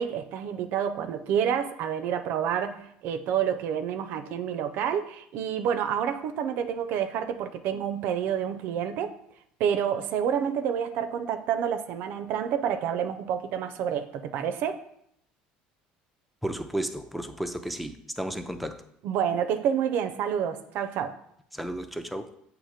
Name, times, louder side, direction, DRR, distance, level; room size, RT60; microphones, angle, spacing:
voice 1, 0.0-9.1 9.6-14.8 19.0-21.1, right 8 dB, 65° right, 9 dB, 0.5 m, -28 dB
voice 2, 16.4-18.8 21.5-22.3, right 1 dB, ahead, 7 dB, 0.5 m, -33 dB
7.2 x 3.0 x 4.9 m, 0.72 s
supercardioid pair, 105°, 4 cm